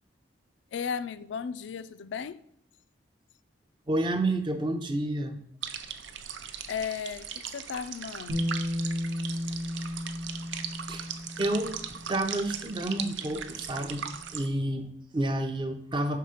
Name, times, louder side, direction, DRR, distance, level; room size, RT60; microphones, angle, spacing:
voice 1, 0.7-2.4 6.7-8.5, left 6 dB, 80° left, 0.3 m, -35 dB
voice 2, 3.9-5.4 10.9-11.1 11.4-11.8 12.1-16.2, right 1 dB, 25° right, 0.5 m, -30 dB
sound 1, 5.6-14.5, right 8 dB, 85° right, 0.5 m, -39 dB
Bass guitar, 8.3-14.3, left 1 dB, 65° right, 0.9 m, -35 dB
5.6 x 3.6 x 4.9 m
head